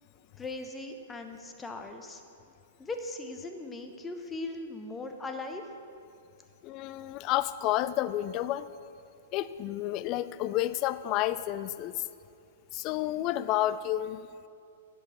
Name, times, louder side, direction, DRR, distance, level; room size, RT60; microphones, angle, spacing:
voice 1, 0.4-2.2 2.8-5.6, left 2 dB, 15° left, 5 dB, 0.9 m, -39 dB
voice 2, 6.6-8.7 9.3-12.1 12.7-14.2, left 14 dB, 40° left, 15 dB, 0.3 m, -30 dB
10.5 x 5.4 x 7.2 m, 2.4 s
hypercardioid pair, 120°, 0 cm